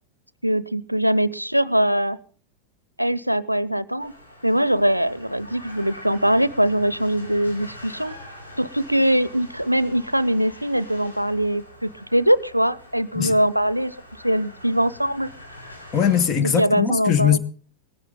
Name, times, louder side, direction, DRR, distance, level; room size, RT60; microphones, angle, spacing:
voice 1, 0.4-2.2 3.0-4.1 4.4-8.1 8.6-13.9 14.2-15.3 16.4-17.4, equal, 90° right, 0.6 m, -22 dB
sound 1, 4.0-16.2, left 1 dB, 85° left, 5.9 m, -44 dB
voice 2, 15.9-17.4, left 8 dB, 30° left, 1.4 m, -20 dB
19.0 x 15.5 x 3.8 m
figure-of-eight pair, 90°, 0 cm